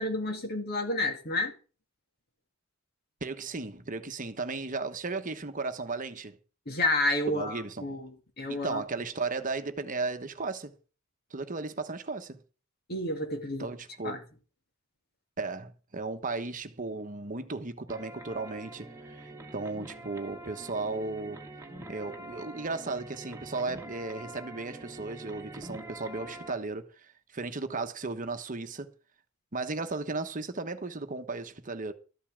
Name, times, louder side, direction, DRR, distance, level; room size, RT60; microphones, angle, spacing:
voice 1, 0.0-1.5 6.7-8.8 12.9-13.7 14.0-14.2, left 2 dB, 50° left, 2.4 m, -30 dB
voice 2, 3.2-6.4 7.3-8.0 8.5-10.7 11.3-12.4 13.6-14.2 15.4-21.4 21.9-28.9 29.5-31.9, right 3 dB, 40° right, 1.1 m, -35 dB
sound 1, 17.9-26.5, right 1 dB, 15° right, 1.9 m, -45 dB
13.5 x 5.6 x 8.6 m
head